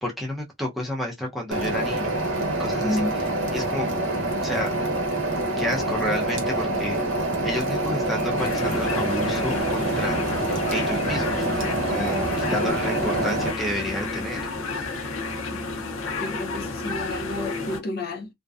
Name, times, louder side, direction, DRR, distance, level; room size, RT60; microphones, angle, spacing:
voice 1, 0.0-3.9 4.4-4.7 5.6-7.0 7.4-10.3 10.7-14.5, equal, ahead, 0.6 m, -31 dB
sound 1, 1.5-13.5, right 2 dB, 65° right, 0.8 m, -26 dB
sound 2, 8.4-17.8, left 3 dB, 85° left, 0.6 m, -31 dB
voice 2, 15.5-15.8 16.2-18.3, left 1 dB, 50° left, 0.4 m, -31 dB
2.5 x 2.2 x 2.4 m
head